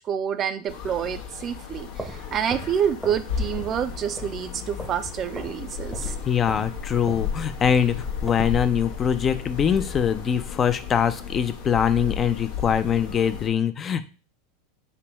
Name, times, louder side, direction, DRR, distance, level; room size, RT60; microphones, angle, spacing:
voice 1, 0.0-6.1, right 8 dB, 35° right, 10 dB, 0.4 m, -28 dB
sound 1, 0.7-13.5, left 6 dB, 75° left, 0.8 m, -34 dB
sound 2, 1.8-3.3 3.6-3.9 4.2-5.1 5.3-5.6 5.9-8.6, right 1 dB, 5° right, 0.7 m, -38 dB
voice 2, 6.3-14.0, left 8 dB, 30° left, 11 dB, 0.4 m, -23 dB
3.4 x 3.3 x 3.0 m, 0.34 s
supercardioid pair, 110°, 0 cm